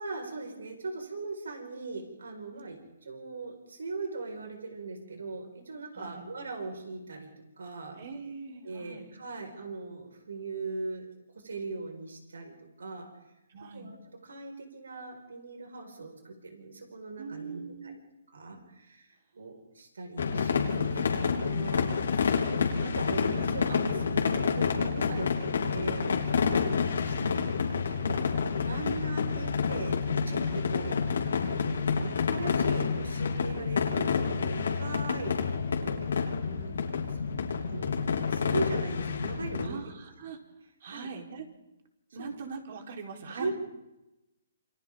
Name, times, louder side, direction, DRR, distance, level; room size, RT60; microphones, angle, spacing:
voice 1, 0.0-7.3 7.6-8.0 8.6-11.1 11.3-13.1 13.7-14.0 14.2-17.9 18.3-21.9 22.4-26.1 26.5-26.6 26.9-31.0 31.4-35.5 35.7-36.0 36.4-37.9 38.3-39.8 40.9-41.1 42.2-42.3 43.3-43.5, right 3 dB, 90° right, 4 dB, 4.7 m, -39 dB
voice 2, 5.9-6.3 7.9-9.1 13.5-13.9 17.2-18.0 25.1-26.1 26.5-26.8 30.5-30.7 39.6-40.4 40.8-41.5 42.1-43.5, right 4 dB, 55° right, 2 dB, 3.7 m, -42 dB
sound 1, 20.2-39.7, left 5 dB, 80° left, 3.1 m, -29 dB
28.0 x 25.5 x 3.6 m, 0.95 s
hypercardioid pair, 150°, 0 cm